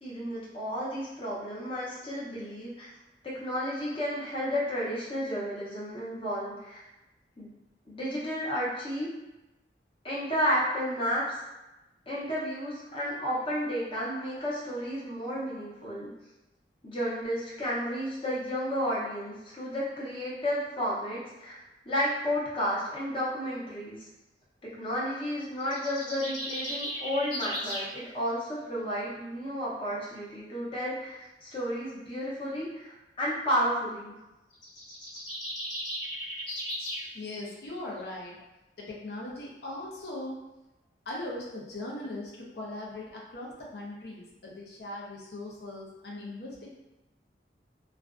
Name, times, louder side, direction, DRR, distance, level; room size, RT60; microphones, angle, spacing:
voice 1, 0.0-2.9 3.2-6.8 7.4-7.5 7.9-9.1 10.0-11.2 12.1-16.1 16.8-21.6 21.8-24.0 24.8-34.1, equal, 30° left, -7 dB, 0.7 m, -32 dB
sound 1, 25.6-27.9 34.5-37.1, equal, 90° left, 1.2 m, -36 dB
voice 2, 37.1-38.4 38.8-40.4 41.1-46.8, left 1 dB, 65° left, -4 dB, 0.6 m, -39 dB
2.4 x 2.2 x 2.4 m, 0.99 s
head